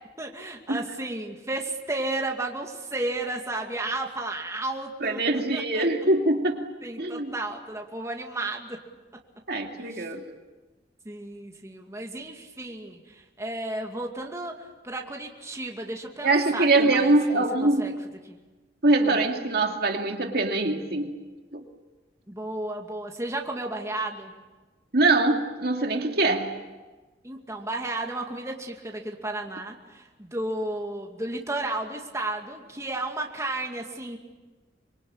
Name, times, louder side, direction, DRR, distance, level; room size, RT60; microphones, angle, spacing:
voice 1, 0.2-5.2 5.5-5.8 6.8-8.8 9.8-10.1 11.0-17.9 18.3-18.4 19.0-19.2 22.3-24.3 27.2-34.2, right 2 dB, 15° right, 1 dB, 2.4 m, -33 dB
voice 2, 5.0-6.6 7.0-7.3 9.5-10.2 16.2-17.9 18.8-21.1 21.5-21.6 24.9-26.5, right 2 dB, 60° right, 3 dB, 2.4 m, -23 dB
25.5 x 23.0 x 8.8 m, 1.2 s
head